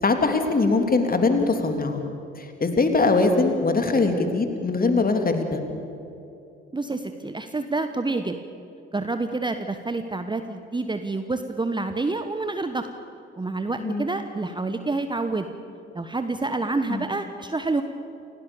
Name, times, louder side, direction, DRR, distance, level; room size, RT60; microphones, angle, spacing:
voice 1, 0.0-2.0 2.4-5.6 13.8-14.1 16.9-17.0, left 3 dB, 25° left, 5 dB, 3.1 m, -22 dB
voice 2, 6.7-8.4 8.9-12.9 13.4-15.5 15.9-17.8, right 3 dB, 15° right, 8 dB, 1.2 m, -28 dB
29.5 x 17.0 x 7.2 m, 2.8 s
figure-of-eight pair, 50°, 33 cm